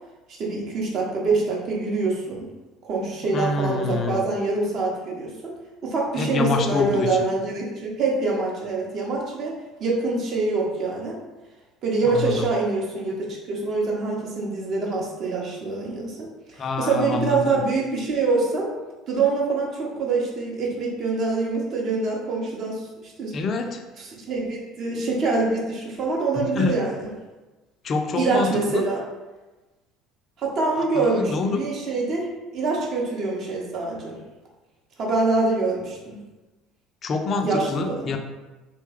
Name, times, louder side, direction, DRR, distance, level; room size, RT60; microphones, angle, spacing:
voice 1, 0.4-2.5 2.8-5.5 5.8-11.2 11.8-18.7 19.1-23.3 24.0-27.1 28.1-29.0 30.4-34.2 35.0-36.2 37.4-38.1, right 3 dB, 45° right, -2 dB, 0.7 m, -25 dB
voice 2, 3.3-4.2 6.2-7.3 12.1-12.5 16.6-17.6 23.3-23.8 26.3-26.7 27.8-28.8 31.0-31.6 37.0-38.2, left 3 dB, 40° left, 4 dB, 0.3 m, -26 dB
2.8 x 2.1 x 3.2 m, 1.1 s
figure-of-eight pair, 60°, 0 cm